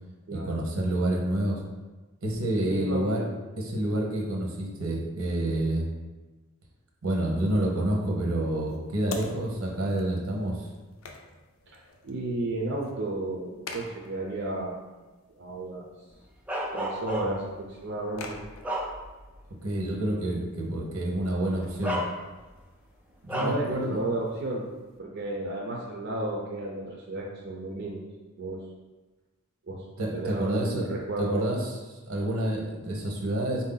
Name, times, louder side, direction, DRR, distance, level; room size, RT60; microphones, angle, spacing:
voice 1, 0.3-1.6 2.2-3.2 3.6-5.9 7.0-10.7 19.6-22.0 23.2-24.0 30.0-33.6, right 1 dB, 90° right, -1 dB, 1.0 m, -28 dB
voice 2, 2.6-3.0 11.7-14.8 15.4-15.9 16.7-18.4 23.4-24.7 25.0-28.0 28.4-28.7 29.7-29.8 30.1-31.5, right 2 dB, 55° right, -2 dB, 0.6 m, -33 dB
sound 1, 7.4-25.0, left 3 dB, 75° left, 0.5 m, -48 dB
Bark, 16.5-17.6 18.1-19.4 19.8-20.0 21.1-21.3 21.8-22.6 23.3-23.7, equal, 5° right, 0.4 m, -32 dB
4.2 x 2.7 x 3.8 m, 1.2 s
head